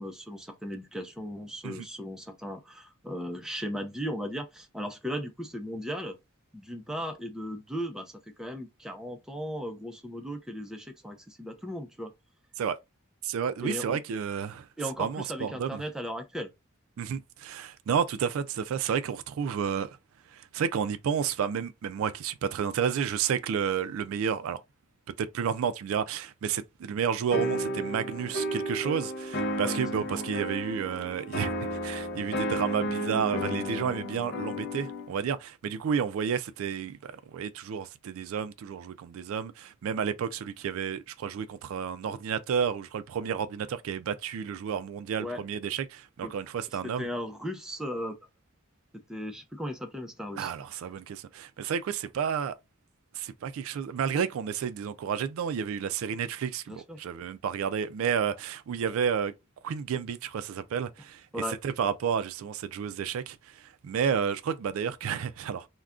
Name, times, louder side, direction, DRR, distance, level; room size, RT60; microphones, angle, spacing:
voice 1, 0.0-6.2 6.5-8.1 8.4-12.1 13.6-14.0 14.8-16.5 29.6-30.4 45.2-45.4 46.2-46.3 47.0-48.1 49.1-50.5 56.7-57.0 61.3-61.6, equal, 5° right, 0.5 m, -37 dB
voice 2, 13.2-14.7 15.0-15.8 17.0-19.9 20.3-24.6 25.2-31.5 31.8-47.1 50.4-52.5 53.1-59.3 59.6-61.2 61.5-65.7, right 7 dB, 70° right, 0.3 m, -31 dB
sound 1, 27.3-35.1, equal, 55° left, 0.6 m, -32 dB
2.4 x 2.2 x 3.5 m
head